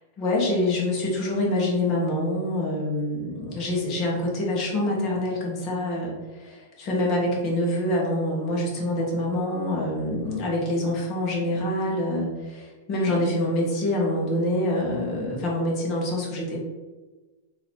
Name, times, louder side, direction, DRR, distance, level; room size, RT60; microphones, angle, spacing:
voice 1, 0.2-16.6, left 1 dB, 35° left, -3 dB, 1.3 m, -26 dB
4.0 x 2.9 x 4.3 m, 1.2 s
supercardioid pair, 150°, 0 cm